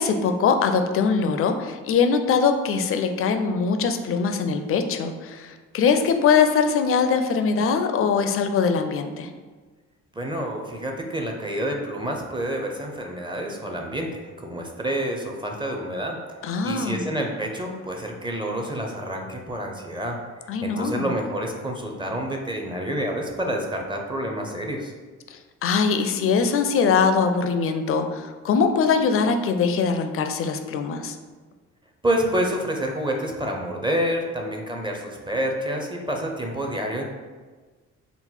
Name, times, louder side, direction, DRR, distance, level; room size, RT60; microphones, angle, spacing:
voice 1, 0.0-9.3 16.4-17.0 20.5-21.1 25.3-31.2, left 5 dB, 45° left, 7 dB, 0.4 m, -22 dB
voice 2, 10.1-16.2 16.4-20.2 20.6-24.9 32.0-37.0, right 1 dB, 15° right, 1 dB, 0.5 m, -28 dB
3.8 x 2.1 x 4.4 m, 1.4 s
cardioid pair, 90°, 30 cm